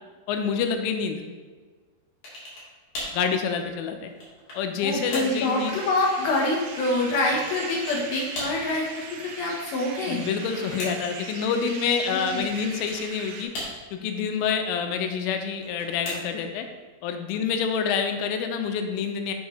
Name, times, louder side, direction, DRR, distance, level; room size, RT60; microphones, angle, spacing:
voice 1, 0.3-1.2 3.1-4.1 4.5-5.8 10.0-13.5 13.9-16.7 17.0-19.3, left 6 dB, 90° left, 6 dB, 3.2 m, -27 dB
sound 1, 2.2-2.7 2.9-3.2 3.9-4.7 5.1-5.4 7.5-8.0 8.3-8.6 10.1-11.2 12.6-13.1 13.5-14.1 15.5-16.5, left 1 dB, 45° left, 3.1 m, -37 dB
voice 2, 4.8-10.3 12.1-12.4, left 2 dB, 75° left, -3 dB, 2.3 m, -26 dB
sound 2, 4.9-13.4, right 5 dB, 75° right, 3.1 m, -40 dB
8.2 x 7.1 x 3.2 m, 1.4 s
omnidirectional pair, 5.7 m